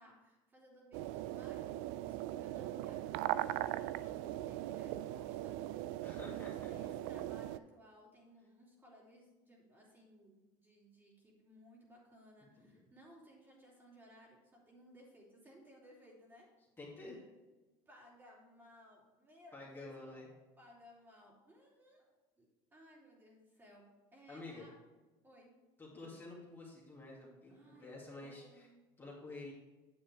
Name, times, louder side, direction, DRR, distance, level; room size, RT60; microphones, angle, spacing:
voice 1, 0.0-16.5 17.0-17.3 17.8-20.3 20.6-22.1 22.4-22.5 22.7-24.7 25.2-25.5 27.5-28.8, equal, 20° right, -3 dB, 3.0 m, -61 dB
sound 1, 0.9-7.6, right 14 dB, 70° right, 0.4 m, -39 dB
voice 2, 6.0-6.7 12.6-12.8 16.8-17.2 19.5-20.3 24.3-24.7 25.8-28.7 29.0-29.5, left 2 dB, 20° left, -5 dB, 2.2 m, -50 dB
9.4 x 7.3 x 3.4 m, 1.2 s
supercardioid pair, 120°, 12 cm